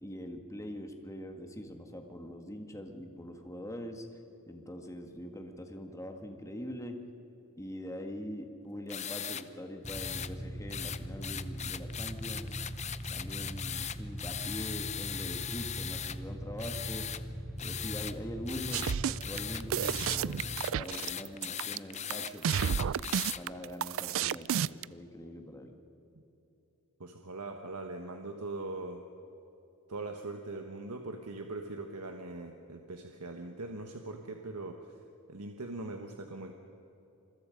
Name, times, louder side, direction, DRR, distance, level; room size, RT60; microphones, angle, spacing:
voice 1, 0.0-4.1 4.5-7.0 7.6-12.6 13.1-17.1 17.6-25.7, equal, 15° left, 4 dB, 1.8 m, -43 dB
sound 1, 8.9-9.4 9.9-10.3 10.7-16.2 16.6-17.2 17.6-18.1 18.5-23.4, left 9 dB, 30° left, 0.7 m, -39 dB
Motorcycle / Idling, 9.8-20.6, equal, 5° right, 2.1 m, -41 dB
sound 2, 18.7-24.8, right 8 dB, 60° right, 0.4 m, -31 dB
voice 2, 27.0-29.0 29.9-35.0 35.3-36.5, right 2 dB, 90° right, 4 dB, 1.4 m, -41 dB
27.5 x 22.0 x 5.3 m, 3.0 s
head